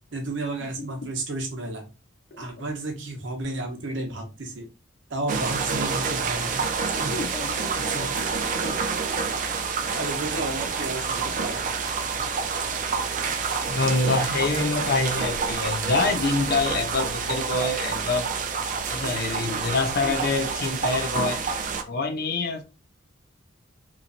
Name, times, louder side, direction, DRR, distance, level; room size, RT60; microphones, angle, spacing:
voice 1, 0.1-1.8 2.4-4.7 5.1-6.7 6.9-7.1 7.8-8.2 8.5-8.8 9.9-11.7 19.0-19.7 19.9-20.2 20.5-20.6, right 2 dB, 65° right, 0.8 m, -32 dB
sound 1, 5.3-21.8, right 5 dB, 40° right, 0.3 m, -28 dB
voice 2, 7.1-8.1 8.6-8.8 13.7-18.3 18.9-21.4 21.9-22.6, left 3 dB, 50° left, 0.5 m, -26 dB
3.0 x 2.5 x 2.6 m
head